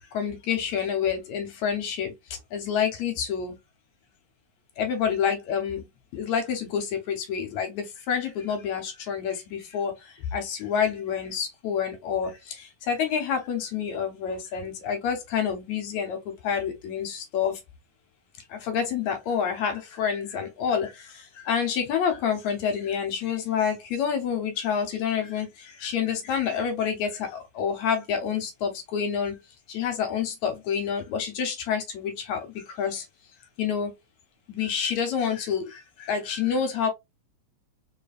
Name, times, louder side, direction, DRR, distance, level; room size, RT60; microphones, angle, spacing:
voice 1, 0.1-2.1 2.5-3.6 4.8-5.9 6.1-17.6 18.5-29.4 29.7-33.1 33.6-33.9 34.5-36.9, left 7 dB, 75° left, 2.0 m, -28 dB
4.6 x 3.2 x 2.4 m
omnidirectional pair, 3.5 m